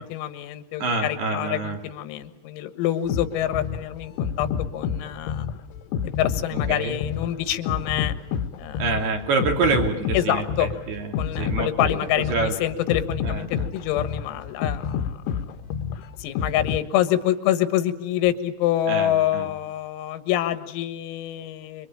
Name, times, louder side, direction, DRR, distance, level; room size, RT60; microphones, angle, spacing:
voice 1, 0.0-5.5 6.0-8.2 8.6-8.8 10.1-10.7 11.2-15.2 16.2-21.9, left 12 dB, 90° left, 11 dB, 4.3 m, -26 dB
voice 2, 0.8-1.8 6.5-7.0 8.8-12.0 12.3-12.6 13.2-13.7 18.9-19.5, right 4 dB, 55° right, 4 dB, 4.6 m, -26 dB
sound 1, 3.1-16.8, left 7 dB, 70° left, 2.7 m, -29 dB
27.5 x 24.0 x 9.1 m, 0.83 s
omnidirectional pair, 6.0 m